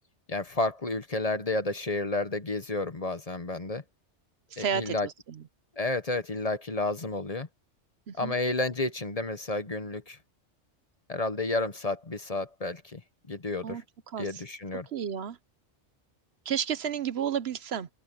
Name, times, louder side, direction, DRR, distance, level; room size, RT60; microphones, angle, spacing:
voice 1, 0.3-3.8 4.6-5.1 5.8-7.5 8.1-10.2 11.1-13.0 13.3-13.8 14.2-14.9, left 2 dB, 35° left, 1.1 m, -31 dB
voice 2, 4.5-5.4 8.1-8.3 13.6-14.4 14.9-15.4 16.5-17.9, right 8 dB, 65° right, 1.0 m, -32 dB
open air
omnidirectional pair, 1.2 m